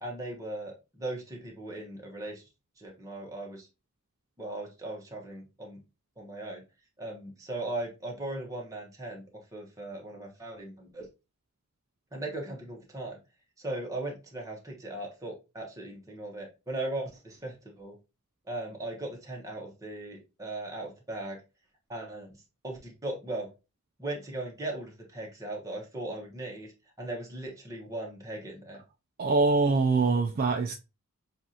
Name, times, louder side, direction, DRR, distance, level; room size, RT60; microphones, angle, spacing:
voice 1, 0.0-2.4 2.8-3.7 4.4-5.8 6.2-6.6 7.0-9.2 9.5-11.1 12.1-13.2 13.6-18.0 18.5-21.4 21.9-22.4 22.6-23.5 24.0-26.7 27.0-28.8, right 2 dB, 15° right, 1.2 m, -38 dB
voice 2, 29.2-30.7, right 3 dB, 40° right, 0.3 m, -24 dB
6.9 x 2.5 x 2.8 m
head